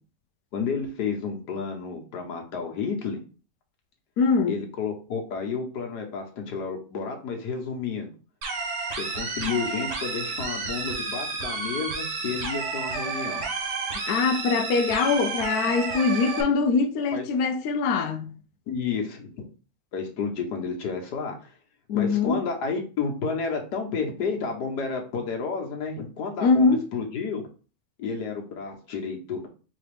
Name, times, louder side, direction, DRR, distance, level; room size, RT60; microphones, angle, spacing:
voice 1, 0.5-3.2 4.5-8.1 9.0-13.5 17.1-17.2 18.7-19.4 19.9-21.5 21.9-27.5 28.0-29.5, left 5 dB, 90° left, 1.6 m, -31 dB
voice 2, 4.2-4.6 13.9-18.3 21.9-22.4 26.4-26.9, left 4 dB, 75° left, 1.0 m, -23 dB
sound 1, 8.4-16.4, right 4 dB, 90° right, 1.5 m, -31 dB
4.1 x 3.5 x 3.3 m
omnidirectional pair, 1.7 m